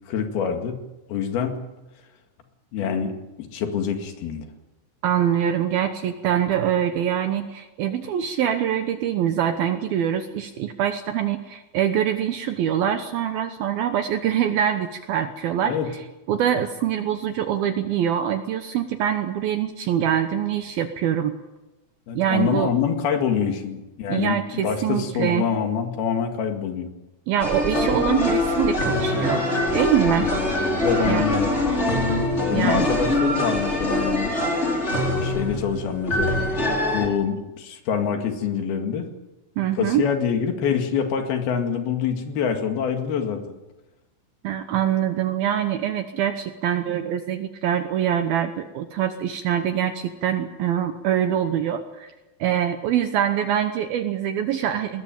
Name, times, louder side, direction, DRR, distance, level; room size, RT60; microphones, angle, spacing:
voice 1, 0.1-0.8 1.1-1.6 2.7-4.4 15.7-15.9 22.1-26.9 30.2-30.5 30.8-31.5 32.4-34.3 35.2-36.4 36.9-39.1 39.7-43.4, left 7 dB, 60° left, 5 dB, 3.6 m, -25 dB
voice 2, 5.0-15.8 16.3-21.4 22.1-22.7 24.1-25.5 27.3-29.4 29.7-30.3 31.1-31.2 32.5-32.9 39.6-40.1 44.4-52.1 52.4-55.0, right 10 dB, 75° right, 7 dB, 2.2 m, -24 dB
sound 1, 27.4-37.1, left 1 dB, 15° left, 4.3 m, -23 dB
21.0 x 20.0 x 9.1 m, 1.0 s
omnidirectional pair, 5.7 m